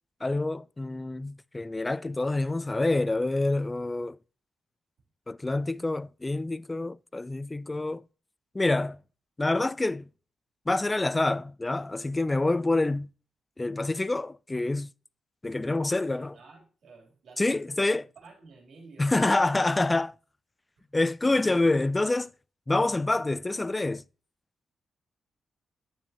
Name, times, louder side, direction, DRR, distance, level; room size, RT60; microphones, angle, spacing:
voice 1, 0.2-4.2 5.3-8.0 8.5-9.0 9.4-10.1 10.7-13.1 13.6-14.9 15.4-16.4 17.4-18.0 19.0-20.1 20.9-22.3 22.7-24.0, left 2 dB, 20° left, 0.3 m, -27 dB
voice 2, 16.1-17.9 18.1-19.5 20.8-20.9 21.3-21.4 21.6-21.7, right 3 dB, 70° right, 3.3 m, -52 dB
9.8 x 7.1 x 2.9 m
cardioid pair, 105°, 0 cm